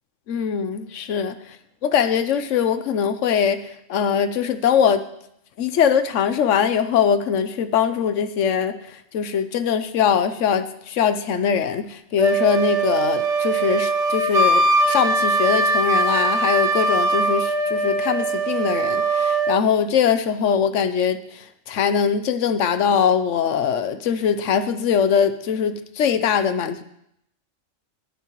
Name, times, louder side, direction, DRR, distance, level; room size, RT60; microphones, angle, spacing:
voice 1, 0.3-1.6 1.8-5.1 5.6-26.8, left 7 dB, 70° left, 12 dB, 1.1 m, -22 dB
Wind instrument woodwind instrument, 12.2-19.6, right 2 dB, 70° right, 1.2 m, -21 dB
19.0 x 9.4 x 3.1 m, 0.77 s
omnidirectional pair, 1.3 m